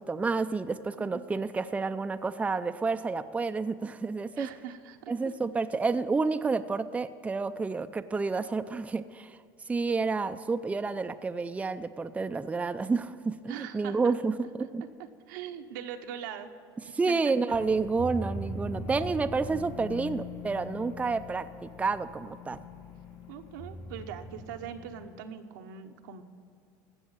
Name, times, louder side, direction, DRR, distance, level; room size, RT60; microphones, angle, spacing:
voice 1, 0.0-4.5 5.1-9.4 9.7-14.8 16.9-22.6, right 4 dB, 15° right, 9 dB, 0.5 m, -30 dB
voice 2, 4.4-5.1 13.5-14.1 15.3-16.5 17.1-17.3 20.8-20.9 23.3-26.2, right 9 dB, 85° right, 5 dB, 1.1 m, -41 dB
sound 1, 17.5-25.2, left 2 dB, 70° left, 3.3 m, -41 dB
16.0 x 6.3 x 8.7 m, 2.4 s
supercardioid pair, 100°, 10 cm